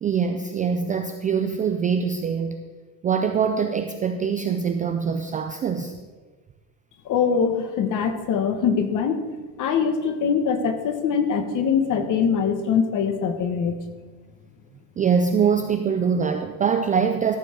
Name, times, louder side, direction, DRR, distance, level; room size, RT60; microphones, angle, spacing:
voice 1, 0.0-2.6 3.0-6.0 15.0-17.4, right 6 dB, 20° right, 6 dB, 0.3 m, -23 dB
voice 2, 7.0-9.2 9.6-13.8, left 6 dB, 40° left, 8 dB, 1.3 m, -23 dB
14.0 x 5.4 x 6.1 m, 1.3 s
cardioid pair, 130°, 44 cm